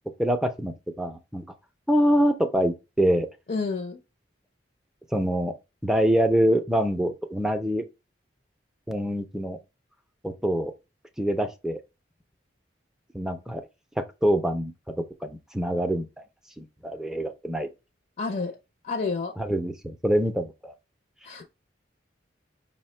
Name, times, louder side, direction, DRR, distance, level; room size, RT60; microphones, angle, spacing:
voice 1, 0.2-1.4 1.9-3.3 5.1-5.5 5.8-7.8 8.9-9.6 10.2-10.7 11.2-11.8 13.1-13.6 14.0-15.0 15.2-16.1 16.6-17.7 19.4-20.7, equal, 5° right, 0.4 m, -25 dB
voice 2, 3.5-4.0 18.2-18.6 18.8-19.3 21.2-21.4, left 4 dB, 45° left, 0.5 m, -29 dB
5.3 x 2.1 x 4.2 m
head